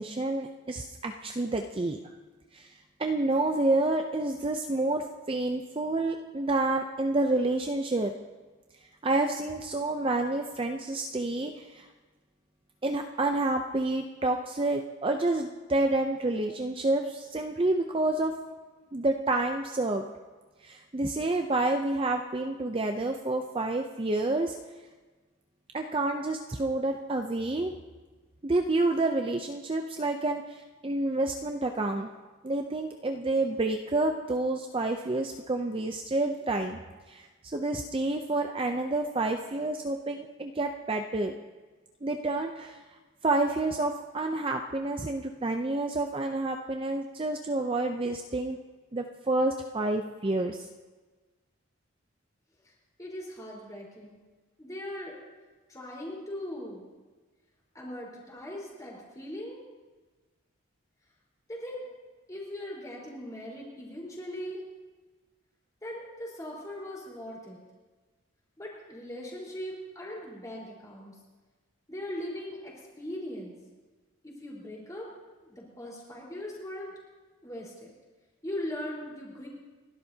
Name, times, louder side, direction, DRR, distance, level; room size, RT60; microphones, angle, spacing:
voice 1, 0.0-2.0 2.5-2.7 3.0-8.1 9.0-11.8 12.8-18.3 18.9-20.1 20.6-24.6 25.7-27.7 28.4-32.1 32.4-36.8 37.1-41.4 42.0-42.8 43.2-48.6 48.9-50.6, right 2 dB, 25° right, 4 dB, 0.5 m, -29 dB
voice 2, 53.0-54.2 54.6-55.2 55.7-56.9 57.7-59.6 61.5-61.9 62.3-64.6 65.8-67.6 68.6-71.2 71.9-73.6 74.2-75.1 75.4-77.0 77.4-77.9 78.4-79.5, left 1 dB, 15° left, -4 dB, 4.3 m, -39 dB
29.5 x 12.5 x 2.8 m, 1.3 s
head